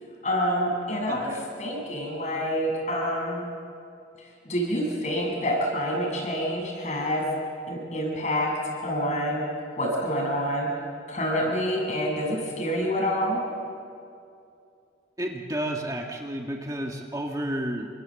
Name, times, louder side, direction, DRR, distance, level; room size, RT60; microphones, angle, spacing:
voice 1, 0.2-3.5 4.2-7.2 7.7-9.4 9.8-10.7 11.1-13.4, equal, 40° left, 0 dB, 7.4 m, -27 dB
voice 2, 1.1-1.4 15.2-17.9, right 1 dB, 20° right, 1 dB, 1.7 m, -31 dB
29.0 x 25.5 x 7.8 m, 2.5 s
head